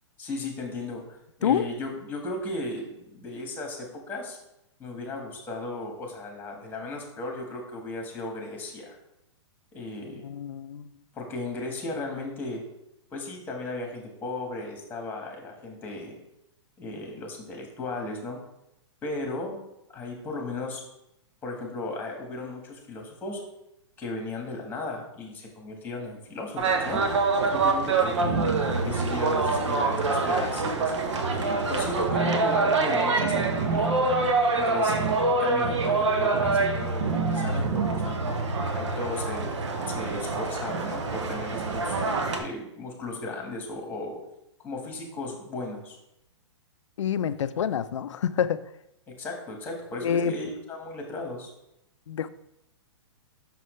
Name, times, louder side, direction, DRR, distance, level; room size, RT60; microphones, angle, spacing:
voice 1, 0.2-1.0 1.4-4.4 4.8-9.0 9.7-10.3 11.1-12.6 13.1-16.2 16.8-18.4 19.0-19.5 19.9-20.8 21.4-23.4 24.0-27.0 27.5-28.4 28.8-30.9 31.3-33.9 34.5-35.1 35.4-38.4 38.7-39.6 39.9-41.9 42.3-44.2 44.6-46.0 49.2-51.5, left 2 dB, 10° left, 2 dB, 1.4 m, -35 dB
voice 2, 10.2-10.9 47.0-48.6 50.0-50.3 52.1-52.3, left 8 dB, 80° left, 14 dB, 0.4 m, -27 dB
sound 1, 26.6-42.4, right 3 dB, 75° right, 1.0 m, -25 dB
6.0 x 5.6 x 3.2 m, 0.84 s
hypercardioid pair, 130°, 15 cm